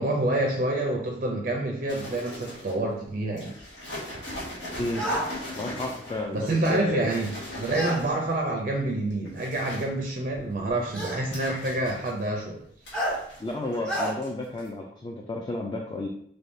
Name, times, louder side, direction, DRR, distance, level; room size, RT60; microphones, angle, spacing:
voice 1, 0.0-3.5 6.3-12.6, right 2 dB, 45° right, 1 dB, 0.4 m, -27 dB
sound 1, 1.9-2.9 3.4-8.3 9.0-9.9 10.3-12.4 12.8-13.8 14.0-14.3 14.6-14.7, left 1 dB, 90° left, 1.2 m, -40 dB
sound 2, 4.9-5.3 7.7-8.0 9.3-9.4 10.9-11.2 12.9-13.2 13.9-14.1, equal, 5° left, 0.9 m, -28 dB
voice 2, 5.6-7.0 13.4-16.1, left 2 dB, 25° left, 0 dB, 0.3 m, -32 dB
3.5 x 3.2 x 2.6 m, 0.67 s
head